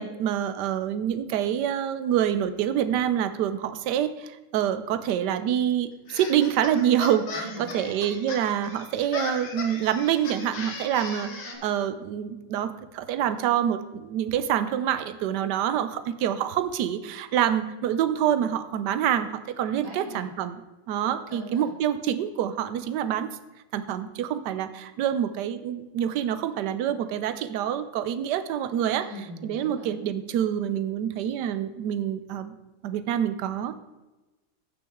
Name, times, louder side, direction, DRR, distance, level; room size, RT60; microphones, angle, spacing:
voice 1, 0.0-7.5 7.7-11.3 11.6-20.6 20.9-23.3 23.7-29.1 29.4-32.5 32.8-33.7, right 10 dB, 70° right, 12 dB, 1.0 m, -26 dB
sound 1, 6.1-11.5, left 3 dB, 85° left, 2.1 m, -37 dB
voice 2, 7.3-8.0 11.2-11.6 19.8-20.3 21.3-21.7 29.0-29.9, equal, 15° right, -5 dB, 2.7 m, -41 dB
14.5 x 6.1 x 3.6 m, 1.1 s
omnidirectional pair, 2.3 m